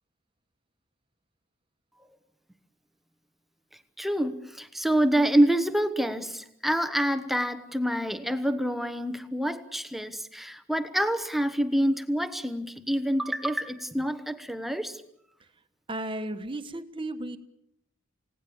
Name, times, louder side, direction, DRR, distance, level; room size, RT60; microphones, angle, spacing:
voice 1, 4.0-15.0, right 1 dB, ahead, 9 dB, 1.0 m, -27 dB
voice 2, 15.9-17.4, right 1 dB, 25° right, 8 dB, 1.4 m, -34 dB
29.0 x 18.0 x 7.1 m, 0.77 s
head